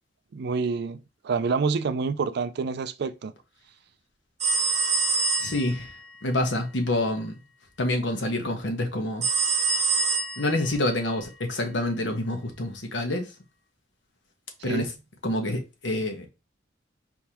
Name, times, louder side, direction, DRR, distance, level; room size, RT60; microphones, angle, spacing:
voice 1, 0.3-3.3 14.6-14.9, right 4 dB, 60° right, 0.4 m, -28 dB
sound 1, 4.4-5.8 9.2-10.7, right 4 dB, 40° right, 1.0 m, -25 dB
voice 2, 5.4-5.9 6.2-7.3 7.8-9.3 10.4-13.2 14.6-14.9 15.2-16.3, left 1 dB, 70° left, 1.1 m, -27 dB
4.5 x 3.6 x 2.9 m
head